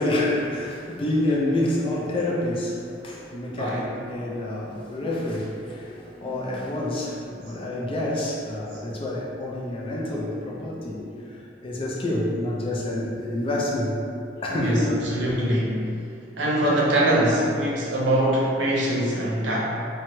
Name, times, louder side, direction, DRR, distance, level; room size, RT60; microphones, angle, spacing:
voice 1, 0.0-14.0 14.4-14.9 15.3-15.4, left 1 dB, 30° left, -4 dB, 0.4 m, -28 dB
voice 2, 14.5-15.9 16.4-19.7, right 1 dB, 75° right, -6 dB, 0.7 m, -23 dB
2.8 x 2.2 x 3.0 m, 2.6 s
head